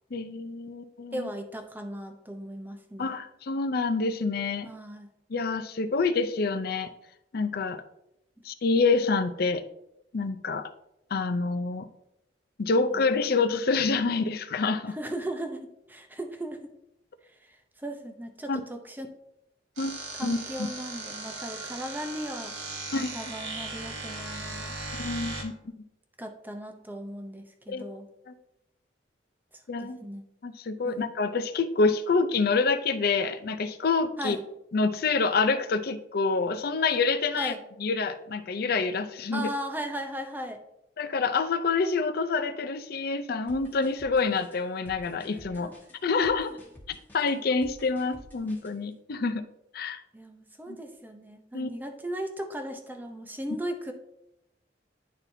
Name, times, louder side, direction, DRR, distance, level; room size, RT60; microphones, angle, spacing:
voice 1, 0.1-1.3 3.0-4.7 5.3-6.9 7.3-7.8 8.4-9.6 10.1-10.7 11.1-11.9 12.6-15.0 18.5-18.6 19.8-20.4 22.9-23.1 25.0-25.5 27.7-27.8 28.3-28.4 29.7-30.0 30.4-34.4 34.7-37.5 37.8-39.5 41.0-45.7 46.0-46.5 46.9-49.4 49.7-50.0 50.7-50.8 51.5-51.7, left 4 dB, 55° left, 11 dB, 0.5 m, -27 dB
voice 2, 1.1-3.2 4.6-5.1 12.9-13.0 14.9-16.7 17.8-19.1 20.2-22.5 22.9-24.7 26.2-28.1 29.8-30.3 30.8-31.0 34.2-34.4 37.4-37.6 39.3-40.6 45.5-45.7 50.1-53.9, right 1 dB, 10° right, 5 dB, 0.7 m, -37 dB
sound 1, 19.8-25.4, right 3 dB, 90° right, 1.4 m, -37 dB
sound 2, 43.5-48.8, left 1 dB, 10° left, 1.3 m, -51 dB
10.5 x 4.1 x 2.7 m, 0.83 s
head